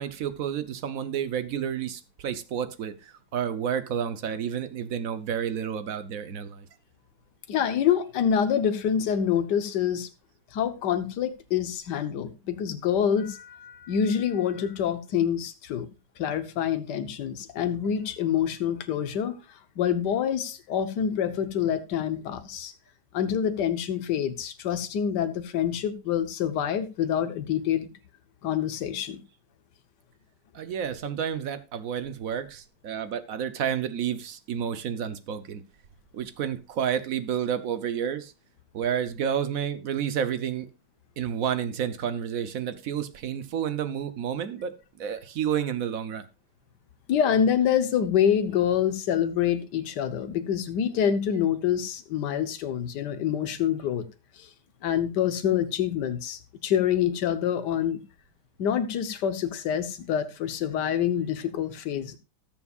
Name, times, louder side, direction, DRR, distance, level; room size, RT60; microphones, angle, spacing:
voice 1, 0.0-6.7 30.5-35.6 36.1-38.3 38.7-40.7 41.2-46.3, right 8 dB, 60° right, 1.0 m, -30 dB
voice 2, 7.5-10.1 10.5-15.9 16.2-19.4 19.8-22.7 23.1-27.9 28.4-29.2 47.1-54.1 54.4-54.5 54.8-58.0 58.6-62.2, left 9 dB, 60° left, 1.5 m, -26 dB
19.0 x 7.2 x 2.4 m
omnidirectional pair, 2.2 m